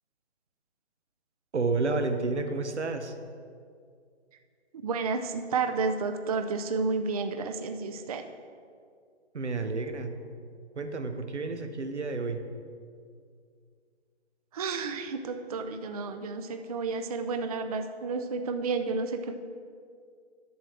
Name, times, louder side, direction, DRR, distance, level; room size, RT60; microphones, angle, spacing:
voice 1, 1.5-3.2 9.3-10.2 10.8-12.4, right 3 dB, 85° right, 8 dB, 0.9 m, -30 dB
voice 2, 4.7-8.2 14.5-19.3, right 4 dB, 35° right, 7 dB, 0.4 m, -31 dB
11.0 x 7.4 x 3.3 m, 2.2 s
figure-of-eight pair, 140°, 34 cm